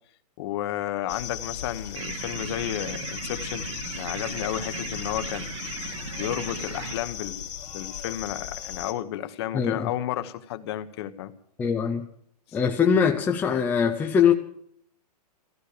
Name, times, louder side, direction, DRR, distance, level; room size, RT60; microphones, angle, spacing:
voice 1, 0.4-3.7 4.0-5.5 6.1-7.4 7.7-11.3 12.5-12.6, left 12 dB, 40° left, 11 dB, 1.1 m, -32 dB
sound 1, 1.1-8.9, left 9 dB, 90° left, 2.6 m, -37 dB
sound 2, 1.9-6.9, right 5 dB, 50° right, 2.8 m, -37 dB
voice 2, 9.5-9.9 11.6-12.1 12.5-14.3, left 7 dB, 10° left, 3 dB, 0.6 m, -22 dB
15.0 x 13.5 x 6.7 m, 0.66 s
hypercardioid pair, 160°, 21 cm